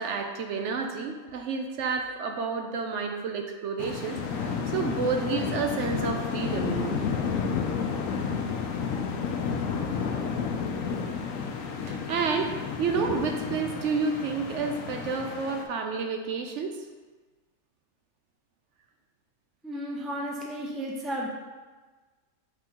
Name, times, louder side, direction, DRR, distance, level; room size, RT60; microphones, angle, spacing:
voice 1, 0.0-7.0 9.7-9.9 11.8-16.8, right 5 dB, 70° right, 4 dB, 0.8 m, -30 dB
sound 1, 3.8-15.6, left 6 dB, 85° left, 1.0 m, -31 dB
voice 2, 19.6-21.3, equal, ahead, -2 dB, 0.4 m, -33 dB
6.0 x 3.6 x 4.4 m, 1.3 s
omnidirectional pair, 1.4 m